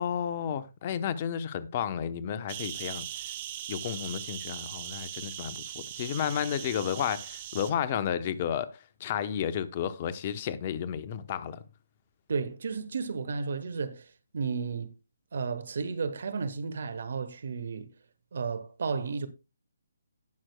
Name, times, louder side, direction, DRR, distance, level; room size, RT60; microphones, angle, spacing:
voice 1, 0.0-3.1 3.7-11.6, left 9 dB, 35° left, 0.8 m, -32 dB
sound 1, 2.5-7.7, right 12 dB, 35° right, 1.2 m, -40 dB
voice 2, 12.3-14.0 14.3-14.9 15.3-17.9 18.3-19.3, right 5 dB, 55° right, 1.2 m, -33 dB
18.0 x 6.2 x 2.3 m
figure-of-eight pair, 145°, 0 cm